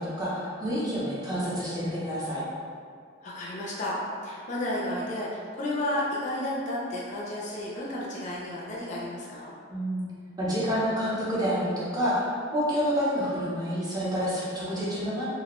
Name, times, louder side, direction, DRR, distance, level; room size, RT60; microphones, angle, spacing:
voice 1, 0.0-2.4 9.7-10.0 10.4-12.3 12.5-15.2, equal, 20° right, -8 dB, 0.5 m, -28 dB
voice 2, 3.2-9.5, left 1 dB, 35° left, -5 dB, 0.3 m, -32 dB
2.4 x 2.0 x 2.9 m, 2.2 s
head